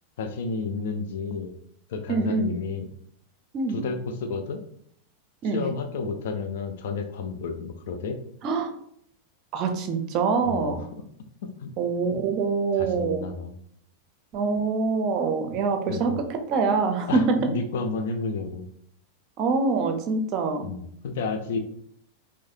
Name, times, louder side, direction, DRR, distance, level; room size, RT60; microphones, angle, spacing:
voice 1, 0.2-1.5 1.9-2.9 3.7-4.6 5.5-8.2 10.4-10.9 11.4-11.7 12.8-13.5 15.4-15.6 15.9-16.2 17.1-18.7 20.6-21.6, left 4 dB, 55° left, 6 dB, 0.5 m, -31 dB
voice 2, 2.1-2.6 3.5-3.9 5.4-5.6 8.4-8.7 9.5-10.8 11.8-13.2 14.3-16.1 16.5-17.5 19.4-20.7, right 4 dB, 40° right, 5 dB, 0.6 m, -25 dB
4.7 x 2.1 x 2.6 m, 0.66 s
figure-of-eight pair, 90°, 0 cm